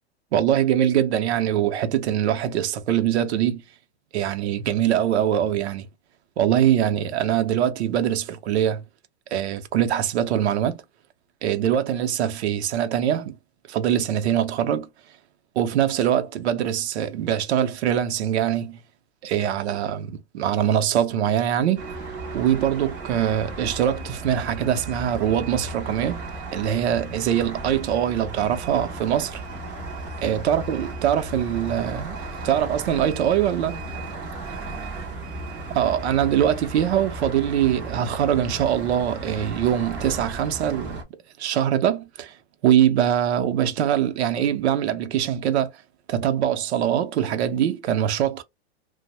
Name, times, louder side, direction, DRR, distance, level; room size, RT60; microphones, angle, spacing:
voice 1, 0.3-3.6 4.1-5.9 6.4-8.8 9.3-10.8 11.4-13.4 13.7-14.9 15.6-18.8 19.2-21.9 22.3-26.2 26.5-29.4 30.2-32.2 32.4-33.8 35.7-41.0 41.4-42.3 42.6-45.7 46.1-48.4, right 10 dB, 80° right, 0.6 m, -23 dB
sound 1, 21.8-41.0, right 2 dB, 15° right, 0.3 m, -35 dB
2.6 x 2.1 x 2.9 m
supercardioid pair, 155°, 33 cm